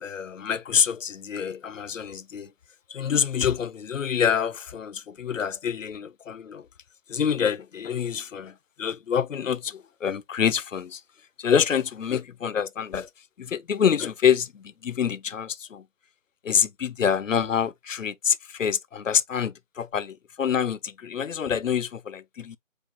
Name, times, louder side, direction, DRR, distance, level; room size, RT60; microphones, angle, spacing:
voice 1, 0.0-2.5 2.9-6.7 7.1-11.0 11.4-13.1 13.4-15.8 16.4-22.6, left 7 dB, 75° left, 0.6 m, -26 dB
4.7 x 4.2 x 2.2 m
figure-of-eight pair, 170°, 39 cm